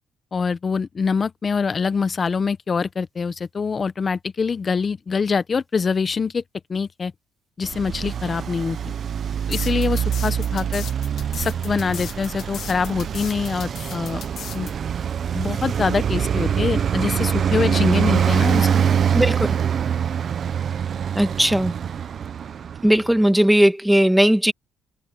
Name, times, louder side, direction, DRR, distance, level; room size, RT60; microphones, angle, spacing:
voice 1, 0.3-6.4 6.7-7.1 7.6-8.8 9.5-10.8 11.4-14.2 14.5-14.7 15.3-18.7, left 5 dB, 35° left, 1.0 m, -24 dB
Traffic noise roadway noise, 7.6-23.1, right 8 dB, 50° right, 0.9 m, -24 dB
sound 1, 9.5-14.7, left 9 dB, 65° left, 2.7 m, -37 dB
voice 2, 19.1-19.6 21.1-21.7 22.8-24.5, equal, 5° right, 1.6 m, -17 dB
cardioid pair, 95°, 0 cm